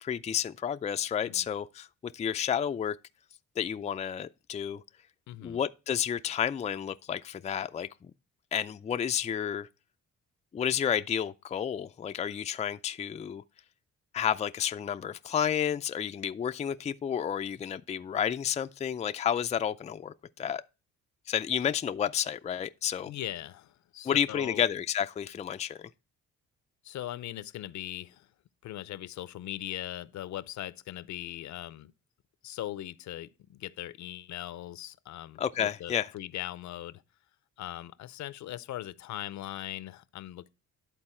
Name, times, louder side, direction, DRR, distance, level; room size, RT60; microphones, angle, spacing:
voice 1, 0.0-3.0 3.6-4.8 5.4-8.1 8.5-9.7 10.5-13.4 14.1-20.6 21.3-23.1 24.0-25.8 35.4-36.1, left 9 dB, 25° left, 0.4 m, -31 dB
voice 2, 5.3-5.6 23.0-24.6 26.8-28.3 28.6-31.9 32.4-37.0 37.6-40.5, left 13 dB, 70° left, 0.6 m, -40 dB
11.0 x 4.0 x 4.3 m
cardioid pair, 90°, 30 cm